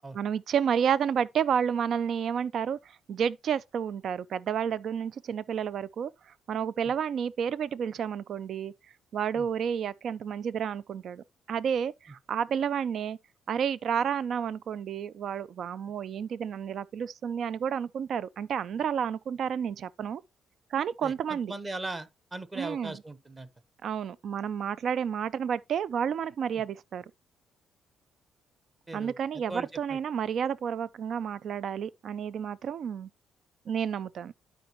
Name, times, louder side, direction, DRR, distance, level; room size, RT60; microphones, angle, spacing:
voice 1, 0.1-8.7 9.1-13.2 13.5-20.2 20.7-21.5 22.6-23.0 23.8-27.0 28.9-33.1 33.7-34.3, right 8 dB, 65° right, 0.4 m, -30 dB
voice 2, 21.0-23.5 28.9-29.2 29.5-30.0, right 2 dB, 25° right, 1.1 m, -39 dB
11.5 x 5.1 x 3.0 m
cardioid pair, 90°, 0 cm